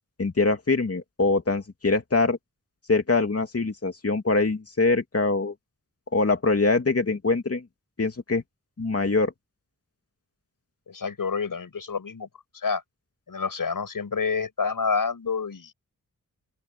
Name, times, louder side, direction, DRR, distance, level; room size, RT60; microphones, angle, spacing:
voice 1, 0.2-2.4 2.9-5.5 6.1-7.6 8.0-8.4 8.8-9.3, left 3 dB, 45° left, 2.7 m, -23 dB
voice 2, 10.9-12.3 12.5-12.8 13.3-15.7, left 5 dB, 75° left, 7.2 m, -28 dB
open air
wide cardioid pair, 100°, 34 cm